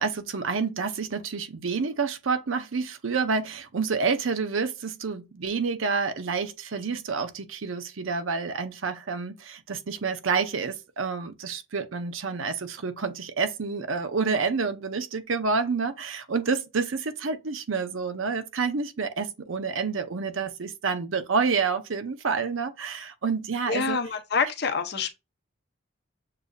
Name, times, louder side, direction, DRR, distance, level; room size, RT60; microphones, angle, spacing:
voice 1, 0.0-24.0, right 5 dB, 85° right, 0.7 m, -28 dB
voice 2, 23.7-25.1, left 5 dB, 55° left, 0.8 m, -26 dB
6.7 x 2.6 x 2.3 m
head